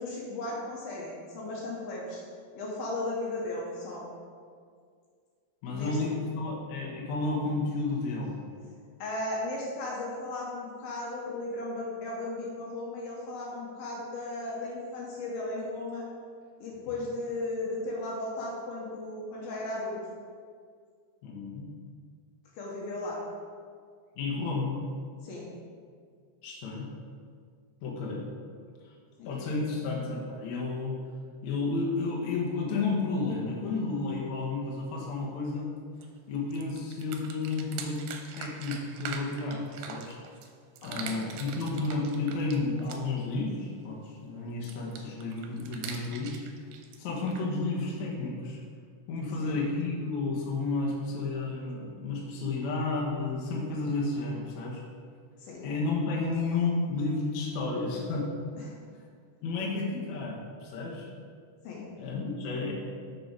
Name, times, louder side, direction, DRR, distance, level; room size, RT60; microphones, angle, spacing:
voice 1, 0.0-2.2 2.5-4.0 5.7-6.0 9.0-16.1 16.6-20.0 22.6-23.2 25.2-25.5 29.2-29.3 40.8-41.2 49.4-49.6 55.4-55.6 61.6-61.9, left 2 dB, 70° left, -4 dB, 2.7 m, -36 dB
voice 2, 5.6-8.4 21.2-21.7 24.1-24.8 26.4-26.9 27.8-28.2 29.2-31.0 31.4-35.7 36.3-38.1 38.4-40.2 40.8-46.3 47.0-48.6 49.1-54.8 55.6-58.3 59.4-61.1 62.0-62.7, left 3 dB, 85° left, -3 dB, 1.6 m, -31 dB
sound 1, 36.0-36.1 36.4-40.5 40.8-43.2 44.6-47.4, right 7 dB, 85° right, 2.8 m, -42 dB
6.7 x 6.6 x 4.7 m, 2.1 s
omnidirectional pair, 5.2 m